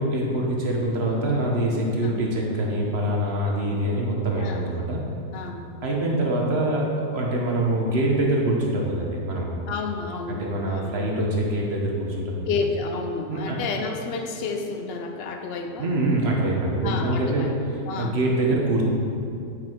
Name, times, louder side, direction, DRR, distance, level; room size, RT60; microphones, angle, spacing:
voice 1, 0.0-5.0 5.8-6.9 7.1-9.5 10.3-12.5 13.3-13.6 15.8-17.5 18.0-18.8, right 1 dB, 45° right, -2 dB, 1.2 m, -24 dB
voice 2, 4.4-4.7 5.3-5.7 9.7-11.0 12.5-15.9 16.8-18.2, left 4 dB, 60° left, 4 dB, 0.6 m, -31 dB
8.3 x 5.7 x 4.5 m, 2.5 s
omnidirectional pair, 1.7 m